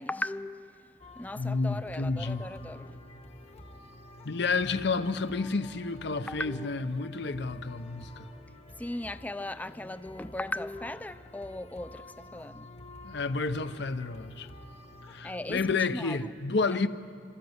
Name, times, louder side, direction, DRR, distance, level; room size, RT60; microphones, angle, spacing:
voice 1, 0.0-3.0 6.3-6.7 8.8-12.7 15.2-15.6 15.9-16.2, left 1 dB, 10° left, 0.4 m, -37 dB
sound 1, 1.0-15.7, left 1 dB, 35° left, 1.2 m, -50 dB
voice 2, 1.4-2.4 4.2-8.3 13.0-14.5 15.1-16.9, left 4 dB, 65° left, 0.8 m, -30 dB
29.5 x 13.5 x 8.0 m
head